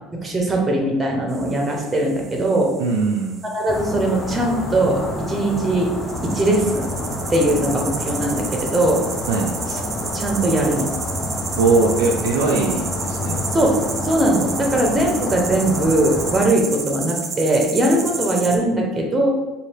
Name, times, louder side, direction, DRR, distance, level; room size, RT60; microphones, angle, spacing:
voice 1, 0.2-2.7 3.5-5.0 5.3-5.9 6.3-6.9 7.3-9.0 10.1-10.9 13.5-19.3, right 1 dB, 20° right, 0 dB, 1.0 m, -20 dB
sound 1, 1.3-18.6, right 4 dB, 35° right, 0.6 m, -32 dB
voice 2, 2.8-3.4 9.3-9.5 11.6-13.4, right 3 dB, 85° right, -1 dB, 0.5 m, -20 dB
sound 2, 3.7-16.5, left 1 dB, 25° left, 0.7 m, -28 dB
4.3 x 2.5 x 3.4 m, 1.1 s
supercardioid pair, 105°, 0 cm